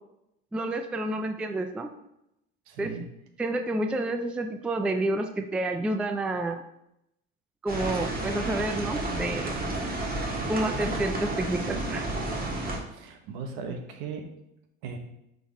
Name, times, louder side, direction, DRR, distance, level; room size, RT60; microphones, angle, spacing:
voice 1, 0.5-1.9 2.8-2.9 3.4-6.6 7.6-9.5 10.5-12.0, right 2 dB, 5° right, 6 dB, 0.3 m, -29 dB
voice 2, 2.7-3.0 12.9-14.2 14.8-15.0, right 5 dB, 70° right, 5 dB, 1.1 m, -37 dB
sound 1, 7.7-12.8, right 2 dB, 25° right, 1.6 m, -31 dB
5.9 x 3.9 x 4.2 m, 0.82 s
supercardioid pair, 90°, 37 cm